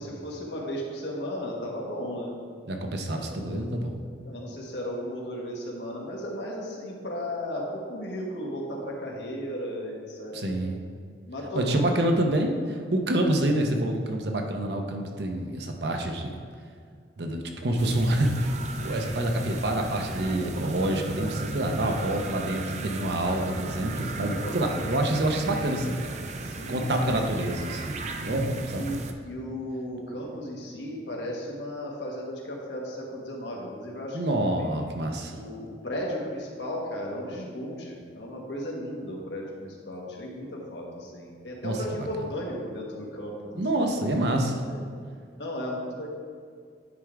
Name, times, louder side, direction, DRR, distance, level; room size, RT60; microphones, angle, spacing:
voice 1, 0.0-2.3 3.1-3.6 4.2-10.6 11.3-11.8 24.3-24.6 26.3-27.1 28.2-28.4 28.7-29.0 29.2-34.2 34.5-34.6 35.3-43.6 44.6-44.8 45.4-46.1, equal, 80° left, -2 dB, 1.4 m, -35 dB
voice 2, 2.7-4.0 10.3-10.8 11.5-16.3 17.2-26.1 26.7-28.9 34.1-35.3 41.6-42.1 43.5-44.6, right 1 dB, 70° right, 3 dB, 0.8 m, -27 dB
sound 1, 17.8-29.1, right 3 dB, 40° right, 0.5 m, -36 dB
9.5 x 3.7 x 4.6 m, 2.2 s
head